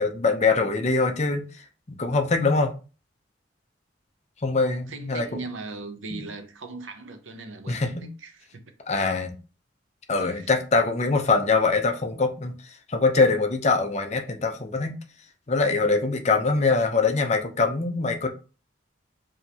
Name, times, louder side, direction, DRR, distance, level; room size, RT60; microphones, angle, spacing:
voice 1, 0.0-2.7 4.4-5.3 6.1-6.2 7.7-8.1 8.9-9.3 10.1-15.0 15.5-18.3, left 3 dB, 35° left, 0.6 m, -23 dB
voice 2, 4.9-8.6 10.2-10.5, right 3 dB, 85° right, 0.7 m, -39 dB
5.0 x 2.7 x 2.8 m
head